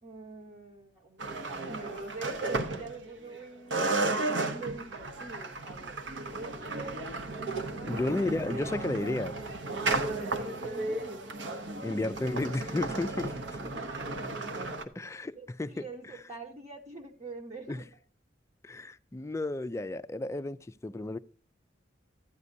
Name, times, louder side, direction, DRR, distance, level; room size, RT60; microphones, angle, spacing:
voice 1, 0.0-3.9 4.2-6.9 7.7-8.7 9.8-11.2 13.6-14.6 15.3-17.9, right 3 dB, 40° right, 1.1 m, -44 dB
sound 1, 1.2-3.4 3.7-14.8, right 2 dB, 70° right, 0.9 m, -34 dB
voice 2, 7.8-9.4 11.8-13.6 14.9-15.8 17.7-17.8 18.6-21.2, left 2 dB, 15° left, 0.3 m, -33 dB
12.5 x 9.5 x 2.6 m
head